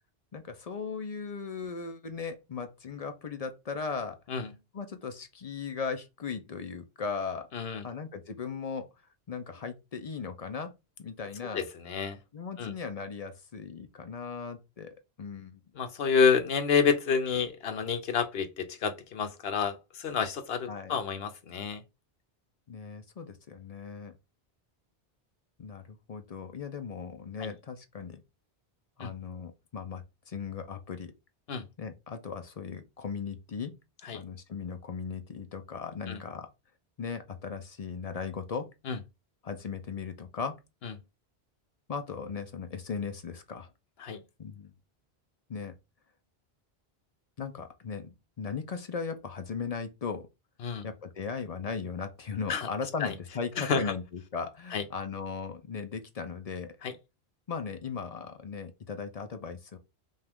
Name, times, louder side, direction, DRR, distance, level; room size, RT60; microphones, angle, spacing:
voice 1, 0.3-4.2 4.7-7.5 7.8-8.9 9.3-10.7 11.0-11.6 12.3-15.6 20.7-20.9 22.7-24.1 25.6-28.2 29.0-31.1 31.8-33.7 34.1-36.5 37.0-38.7 39.4-40.6 41.9-43.7 44.4-44.7 45.5-45.7 47.4-50.3 50.8-56.7 57.5-59.8, left 5 dB, 45° left, 0.6 m, -37 dB
voice 2, 7.5-7.8 11.5-12.2 12.6-12.7 15.8-21.8 27.4-27.5 29.0-29.1 31.5-31.6 34.0-34.2 36.1-36.2 38.9-39.0 40.8-40.9 44.0-44.2 50.6-50.8 52.5-52.7 53.0-53.1 53.6-53.9 54.7-54.8 56.8-56.9, left 6 dB, 70° left, 1.0 m, -29 dB
5.4 x 2.4 x 3.5 m
omnidirectional pair, 1.1 m